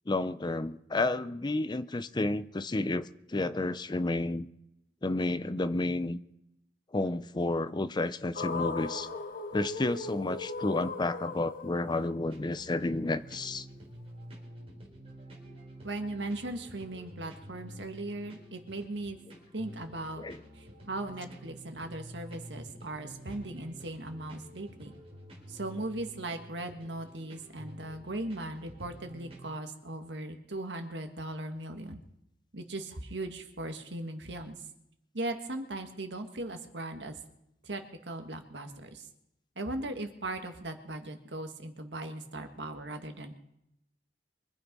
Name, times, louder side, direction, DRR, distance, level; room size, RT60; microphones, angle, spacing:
voice 1, 0.1-4.5 5.0-6.2 6.9-9.1 9.5-13.7 20.2-20.4, left 2 dB, 25° left, 14 dB, 0.5 m, -31 dB
sound 1, 8.4-12.6, left 3 dB, 55° left, 1.2 m, -37 dB
sound 2, 12.3-29.5, equal, 35° right, 4.6 m, -49 dB
voice 2, 15.8-19.2 19.5-20.2 20.6-24.9 25.5-32.0 32.5-34.6 35.1-37.2 37.6-39.1 39.6-43.4, right 2 dB, 85° right, 6 dB, 1.8 m, -38 dB
24.0 x 8.8 x 5.4 m, 0.81 s
head